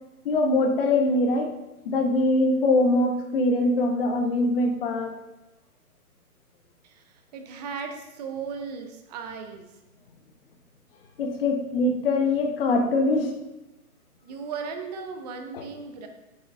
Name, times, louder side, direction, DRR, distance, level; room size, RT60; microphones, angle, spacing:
voice 1, 0.2-1.5 1.8-5.2 11.2-13.4 15.5-15.7, left 2 dB, 35° left, 3 dB, 1.5 m, -23 dB
voice 2, 6.8-9.7 14.2-16.1, right 5 dB, 25° right, 5 dB, 1.1 m, -36 dB
9.9 x 8.2 x 3.6 m, 0.97 s
figure-of-eight pair, 135°, 46 cm